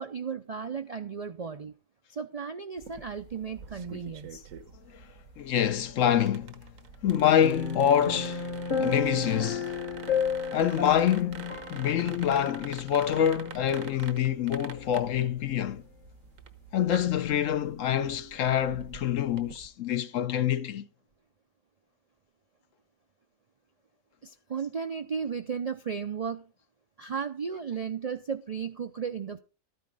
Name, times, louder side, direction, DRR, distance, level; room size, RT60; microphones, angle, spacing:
voice 1, 0.0-1.7 2.1-4.5 24.2-26.5 27.0-29.4, right 6 dB, 55° right, 0.4 m, -35 dB
sound 1, 2.8-19.7, right 6 dB, 80° right, 1.4 m, -47 dB
voice 2, 5.4-6.7 7.0-8.5 8.8-9.8 10.5-15.8 16.7-20.9, left 10 dB, 75° left, 1.1 m, -26 dB
sound 2, 7.4-12.9 13.2-13.4, left 5 dB, 40° left, 1.1 m, -32 dB
13.0 x 9.4 x 3.8 m
omnidirectional pair, 1.4 m